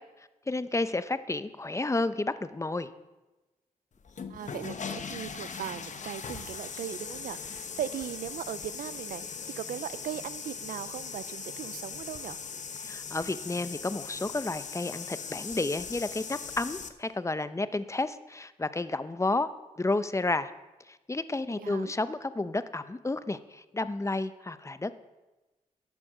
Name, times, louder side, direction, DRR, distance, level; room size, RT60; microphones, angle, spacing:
voice 1, 0.5-2.9 12.8-19.5 19.8-20.5 20.9-24.9, left 2 dB, 20° left, 13 dB, 0.7 m, -31 dB
sound 1, 4.0-16.9, left 6 dB, 60° left, 1.0 m, -40 dB
voice 2, 4.3-12.4 21.6-21.9, right 10 dB, 85° right, 17 dB, 0.5 m, -38 dB
11.5 x 8.4 x 6.5 m, 1.1 s
cardioid pair, 60°, 14 cm